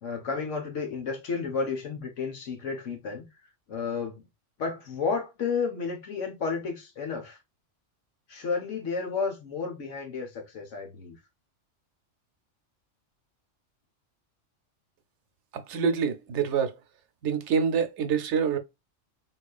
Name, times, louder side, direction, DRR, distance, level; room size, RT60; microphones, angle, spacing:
voice 1, 0.0-3.3 3.7-4.2 4.6-7.4 8.3-11.2, left 5 dB, 90° left, 1.4 m, -32 dB
voice 2, 15.7-16.7 17.2-18.6, right 6 dB, 75° right, 0.9 m, -26 dB
4.1 x 2.9 x 2.3 m
omnidirectional pair, 1.2 m